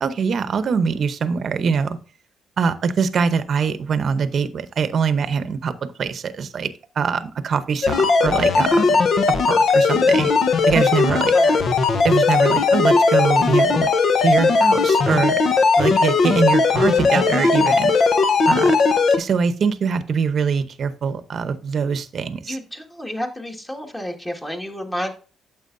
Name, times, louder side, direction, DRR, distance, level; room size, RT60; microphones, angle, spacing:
voice 1, 0.0-2.0 2.6-5.7 6.0-6.7 7.0-9.0 9.4-10.3 10.7-11.3 12.0-13.9 14.2-15.4 15.8-17.9 18.5-18.8 19.2-22.6, right 6 dB, 55° right, 12 dB, 0.8 m, -23 dB
sound 1, 7.8-19.2, left 4 dB, 55° left, 0.9 m, -17 dB
voice 2, 11.3-11.7 22.5-25.1, equal, 15° left, 3 dB, 1.8 m, -30 dB
9.2 x 7.1 x 2.6 m, 0.37 s
cardioid pair, 90°, 0 cm